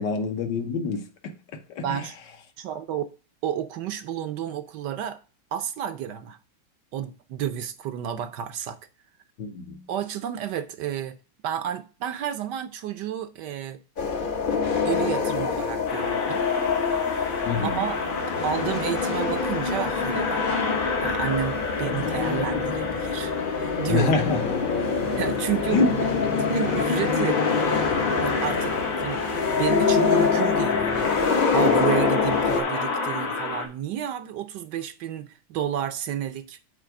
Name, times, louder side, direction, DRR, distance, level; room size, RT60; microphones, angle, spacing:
voice 1, 0.0-2.0 9.4-9.8 17.4-17.8 23.9-24.4 25.7-25.9, left 4 dB, 70° left, 1.6 m, -26 dB
voice 2, 1.8-2.1 2.6-3.1 3.4-5.2 5.5-6.4 6.9-8.8 9.9-11.2 11.4-13.8 14.8-16.4 17.6-18.0 18.4-20.5 21.0-24.1 25.2-25.8 26.5-27.4 27.9-29.2 29.5-31.1 31.5-36.6, right 10 dB, 70° right, 1.2 m, -31 dB
sound 1, 14.0-32.6, left 5 dB, 45° left, 0.7 m, -25 dB
sound 2, 15.9-33.7, left 4 dB, 90° left, 2.4 m, -31 dB
7.6 x 3.4 x 5.7 m
omnidirectional pair, 2.1 m